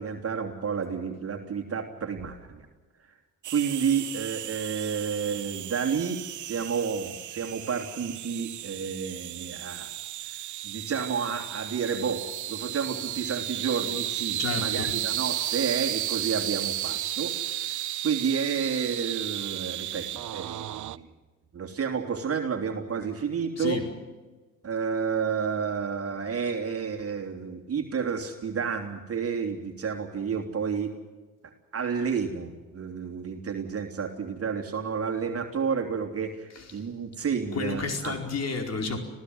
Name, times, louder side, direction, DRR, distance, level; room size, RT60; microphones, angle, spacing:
voice 1, 0.0-2.7 3.5-9.9 10.6-17.8 18.0-21.1 21.5-23.8 24.6-30.9 31.7-38.1, right 6 dB, 45° right, 3 dB, 3.1 m, -30 dB
sound 1, 3.4-21.0, right 13 dB, 60° right, 0.9 m, -34 dB
voice 2, 14.4-15.0 23.6-23.9 36.5-36.7 37.5-39.0, left 4 dB, 50° left, 4 dB, 4.8 m, -31 dB
26.5 x 16.5 x 7.9 m, 1.3 s
cardioid pair, 90°, 34 cm